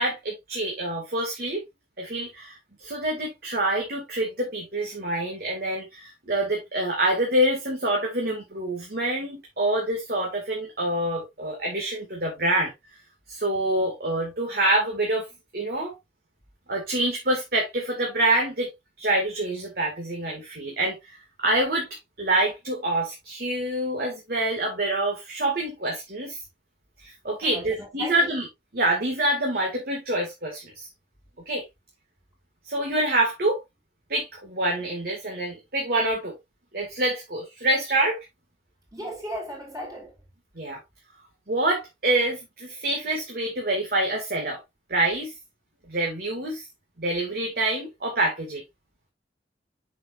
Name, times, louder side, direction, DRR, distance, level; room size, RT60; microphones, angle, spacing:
voice 1, 0.0-1.6 2.0-12.7 13.3-15.3 15.5-15.9 16.7-18.7 19.0-21.9 22.2-26.4 27.0-28.5 28.7-30.9 31.5-31.6 32.7-33.6 34.1-36.4 36.7-38.2 40.6-40.8 41.5-44.6 44.9-45.3 45.9-46.7 47.0-48.6, right 1 dB, 60° right, 2.3 m, -26 dB
voice 2, 27.4-28.3 38.9-40.1, equal, 20° right, 3.8 m, -36 dB
7.5 x 6.4 x 2.6 m
head